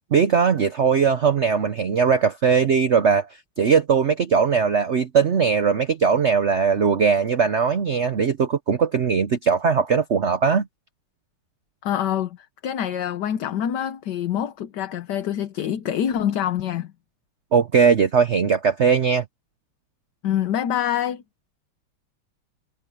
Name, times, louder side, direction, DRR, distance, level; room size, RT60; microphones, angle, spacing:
voice 1, 0.1-3.3 3.6-10.7 17.5-19.2, right 6 dB, 75° right, 0.6 m, -19 dB
voice 2, 11.8-16.9 20.2-21.2, left 10 dB, 60° left, 1.4 m, -25 dB
omnidirectional pair, 2.3 m